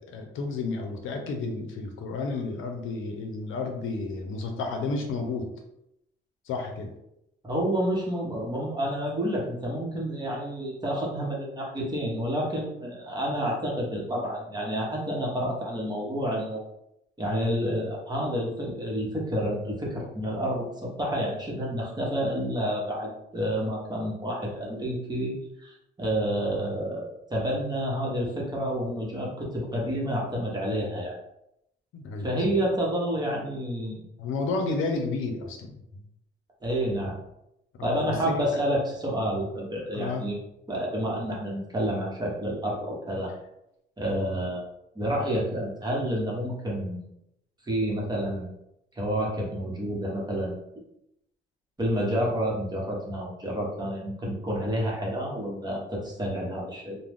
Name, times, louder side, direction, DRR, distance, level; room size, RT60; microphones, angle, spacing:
voice 1, 0.0-5.5 6.5-6.9 31.9-32.3 34.2-35.8 37.8-38.6 39.9-40.3, left 3 dB, 80° left, 3 dB, 0.6 m, -31 dB
voice 2, 7.4-16.6 17.2-25.3 25.6-31.2 32.2-34.0 36.6-37.2 37.8-40.4 40.7-43.3 44.0-44.6 44.9-47.1 47.6-48.5 48.9-50.6 51.8-57.0, equal, 20° right, -3 dB, 1.0 m, -29 dB
2.4 x 2.1 x 3.4 m, 0.82 s
cardioid pair, 90°, 20 cm